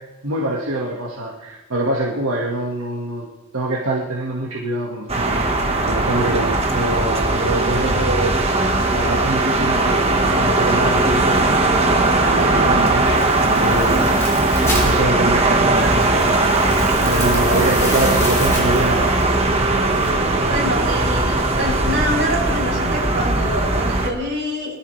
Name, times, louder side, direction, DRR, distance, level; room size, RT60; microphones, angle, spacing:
voice 1, 0.2-3.3 3.5-5.4 5.8-8.4 8.9-11.6 12.2-14.1 14.6-16.5 17.0-19.2, right 2 dB, 75° right, -3 dB, 1.9 m, -24 dB
sound 1, 5.1-24.1, right 2 dB, 30° right, 1.5 m, -18 dB
sound 2, 10.9-20.1, left 1 dB, 15° left, 4.8 m, -33 dB
voice 2, 20.5-24.8, equal, 55° right, -4 dB, 7.1 m, -25 dB
22.5 x 14.0 x 3.4 m, 1.1 s
head